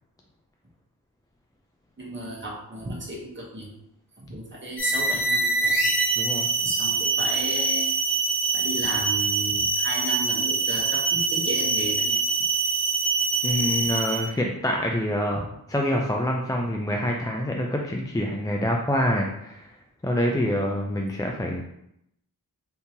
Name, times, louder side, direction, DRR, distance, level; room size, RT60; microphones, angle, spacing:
voice 1, 2.0-3.7 4.2-5.9 6.6-7.9 8.5-12.2 15.3-15.4, right 1 dB, 30° right, -3 dB, 0.9 m, -34 dB
sound 1, 4.8-14.3, right 3 dB, 85° left, 0.6 m, -24 dB
voice 2, 6.2-6.5 13.4-19.7 20.0-21.6, equal, 10° left, 0 dB, 0.4 m, -26 dB
3.6 x 2.8 x 2.7 m, 0.78 s
wide cardioid pair, 40°, 38 cm